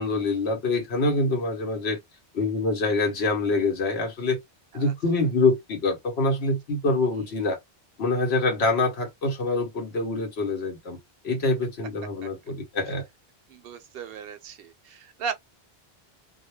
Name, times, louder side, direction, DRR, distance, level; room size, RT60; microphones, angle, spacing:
voice 1, 0.0-2.0 2.3-4.4 4.7-7.6 8.0-11.0 11.2-13.0, left 3 dB, 85° left, 1.1 m, -25 dB
voice 2, 13.5-15.3, right 6 dB, 70° right, 0.7 m, -36 dB
2.3 x 2.1 x 3.0 m
omnidirectional pair, 1.0 m